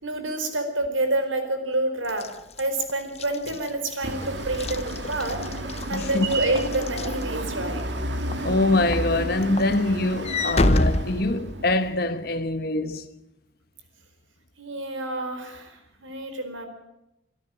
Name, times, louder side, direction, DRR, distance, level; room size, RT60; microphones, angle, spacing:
voice 1, 0.0-2.3 2.6-5.4 5.9-7.8 14.6-16.7, right 2 dB, 90° right, 4.6 m, -28 dB
Walk footsteps / Slam, 2.1-7.8 8.3-8.6 8.9-11.9, left 2 dB, 35° left, 0.8 m, -28 dB
sound 1, 4.0-12.3, right 1 dB, 65° right, 2.2 m, -32 dB
voice 2, 5.9-6.3 8.4-13.1, left 2 dB, 50° left, 1.1 m, -24 dB
24.5 x 13.0 x 8.8 m
head